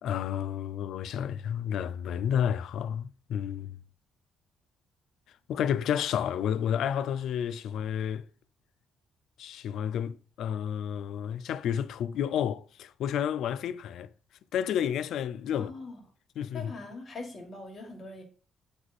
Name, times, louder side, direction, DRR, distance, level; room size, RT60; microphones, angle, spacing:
voice 1, 0.0-3.8 5.5-8.2 9.4-14.1 14.5-15.7 16.4-16.7, left 9 dB, 65° left, 0.3 m, -31 dB
voice 2, 15.5-16.0 16.5-18.2, left 3 dB, 25° left, 1.5 m, -42 dB
7.9 x 3.2 x 4.1 m
cardioid pair, 180°, 0 cm